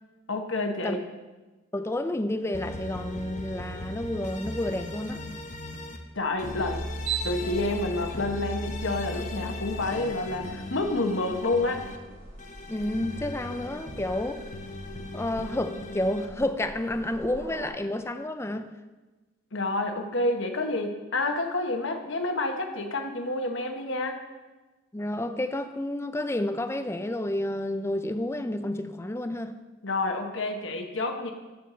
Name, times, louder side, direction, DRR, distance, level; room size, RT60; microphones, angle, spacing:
voice 1, 0.3-1.0 6.1-6.9 7.2-11.8 19.5-24.2 29.8-31.3, left 2 dB, 65° left, 4 dB, 1.1 m, -29 dB
voice 2, 1.7-5.2 12.7-14.4 15.1-18.7 24.9-29.5, left 1 dB, 15° left, 9 dB, 0.4 m, -30 dB
sound 1, 2.5-6.0 6.4-12.0 12.4-16.3, left 1 dB, 35° left, 0.8 m, -38 dB
sound 2, 6.2-17.7, right 5 dB, 85° right, 3.4 m, -42 dB
12.0 x 4.7 x 6.6 m, 1.2 s
head